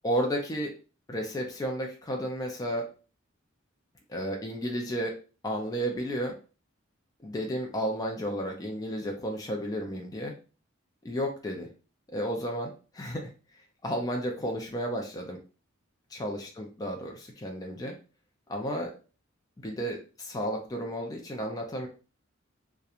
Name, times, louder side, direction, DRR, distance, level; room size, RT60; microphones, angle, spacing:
voice 1, 0.0-0.7 1.1-2.9 4.1-5.2 5.4-6.4 7.2-10.3 11.0-11.7 12.1-13.3 13.8-15.4 16.1-17.9 18.5-18.9 19.6-21.9, equal, 20° left, 1 dB, 0.4 m, -32 dB
2.8 x 2.2 x 2.4 m, 0.34 s
head